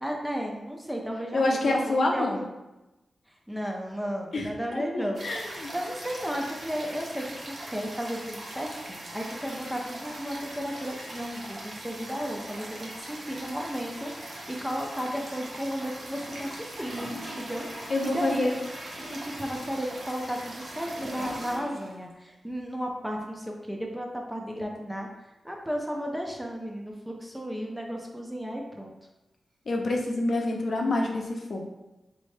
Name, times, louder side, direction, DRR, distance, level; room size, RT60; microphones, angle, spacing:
voice 1, 0.0-2.5 3.5-18.5 19.0-25.1 25.4-28.9, equal, 5° right, 0 dB, 0.4 m, -34 dB
voice 2, 1.3-2.4 4.3-4.5 4.7-5.7 17.9-18.5 29.7-31.6, left 2 dB, 50° left, 0 dB, 0.6 m, -27 dB
sound 1, 5.1-21.6, right 1 dB, 55° right, 0.8 m, -41 dB
Gurgling / Toilet flush, 15.9-22.0 22.3-22.4, equal, 75° right, 1.5 m, -43 dB
4.2 x 2.7 x 3.2 m, 1.0 s
wide cardioid pair, 165°, 0 cm